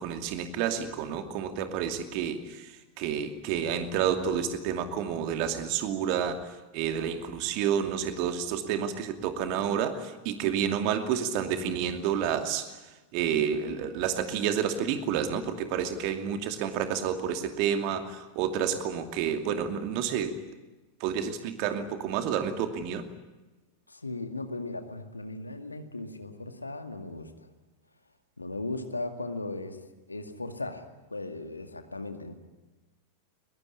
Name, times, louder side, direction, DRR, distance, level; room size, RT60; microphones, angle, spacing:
voice 1, 0.0-12.8 13.1-20.4 21.0-23.1, right 8 dB, 45° right, 7 dB, 2.5 m, -30 dB
voice 2, 23.9-27.5 28.4-29.8 30.1-32.4, left 2 dB, 80° left, 7 dB, 2.2 m, -37 dB
21.5 x 21.5 x 10.0 m, 1.1 s
figure-of-eight pair, 90°, 0 cm